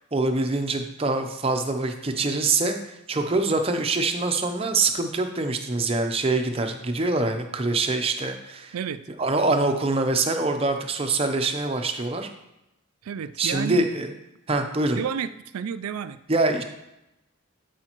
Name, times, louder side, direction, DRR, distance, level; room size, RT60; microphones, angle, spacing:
voice 1, 0.1-8.7 9.2-12.3 13.4-14.1 14.5-15.0 16.3-16.6, right 3 dB, 25° right, 5 dB, 0.6 m, -24 dB
voice 2, 13.0-13.8 14.9-16.2, right 7 dB, 85° right, 13 dB, 0.4 m, -31 dB
12.0 x 4.9 x 3.0 m, 0.91 s
head